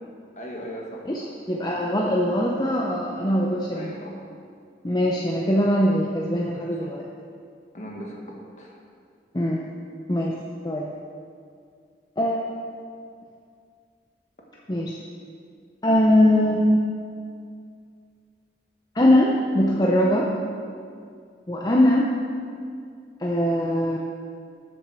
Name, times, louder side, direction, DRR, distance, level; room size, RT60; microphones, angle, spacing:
voice 1, 0.3-1.8 3.7-4.2 6.5-6.6 7.7-8.8, equal, 45° left, -1 dB, 1.6 m, -39 dB
voice 2, 1.5-3.9 4.8-7.0 9.3-9.6 10.1-10.3 10.6-10.9 12.2-12.7 14.7-15.0 15.8-16.8 18.9-20.3 21.5-22.1 23.2-24.0, left 1 dB, 25° left, -2 dB, 0.7 m, -21 dB
8.0 x 7.1 x 6.9 m, 2.2 s
head